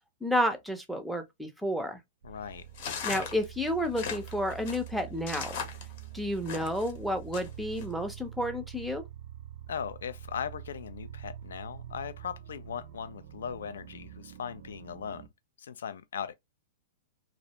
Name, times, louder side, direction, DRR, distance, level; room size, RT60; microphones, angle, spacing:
voice 1, 0.2-2.0 3.0-5.6 6.1-9.0, equal, ahead, 0.5 m, -31 dB
voice 2, 2.2-2.6 9.7-15.3 15.6-16.3, left 7 dB, 85° left, 0.4 m, -38 dB
sound 1, 2.2-15.3, right 11 dB, 70° right, 0.4 m, -46 dB
sound 2, 2.7-6.9 7.3-7.8, left 7 dB, 55° left, 0.8 m, -38 dB
2.4 x 2.0 x 2.8 m
hypercardioid pair, 140°, 0 cm